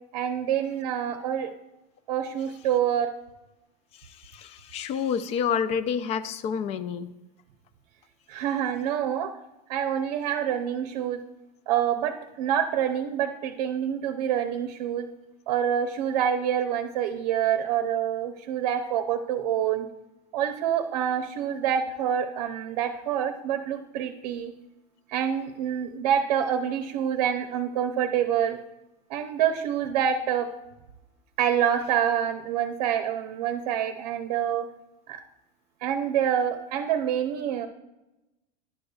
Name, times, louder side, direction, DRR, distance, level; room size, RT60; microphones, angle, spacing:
voice 1, 0.1-1.5 2.1-3.1 8.3-9.3 9.7-11.2 11.7-15.1 15.5-19.9 20.3-24.5 25.1-28.6 29.1-30.5 31.4-34.7 35.1-35.2 35.8-37.7, right 9 dB, 75° right, 7 dB, 0.7 m, -26 dB
voice 2, 4.0-7.1, left 7 dB, 30° left, 13 dB, 0.4 m, -29 dB
11.0 x 6.6 x 2.3 m, 0.98 s
supercardioid pair, 145°, 21 cm